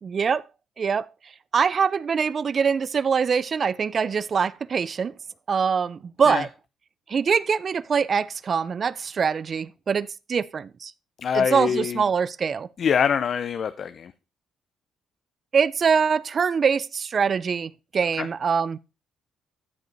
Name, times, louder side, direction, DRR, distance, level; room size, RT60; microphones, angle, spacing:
voice 1, 0.0-0.4 0.8-1.1 1.5-5.1 5.5-6.5 7.1-10.9 11.3-12.7 15.5-18.8, right 6 dB, 45° right, 0.4 m, -23 dB
voice 2, 11.2-12.0 12.8-14.1 18.2-18.3, left 7 dB, 55° left, 0.5 m, -24 dB
13.5 x 5.0 x 4.0 m
cardioid pair, 90°, 0 cm